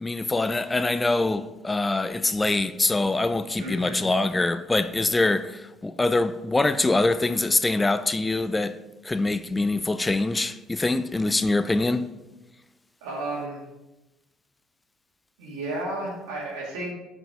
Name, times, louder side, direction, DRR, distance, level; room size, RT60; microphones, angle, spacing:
voice 1, 0.0-8.7 9.1-12.1, left 2 dB, 20° left, 0.4 m, -24 dB
voice 2, 3.6-4.0 13.0-13.6 15.4-16.9, right 2 dB, 80° right, 2.4 m, -32 dB
6.1 x 5.1 x 5.1 m
hypercardioid pair, 65°, 0 cm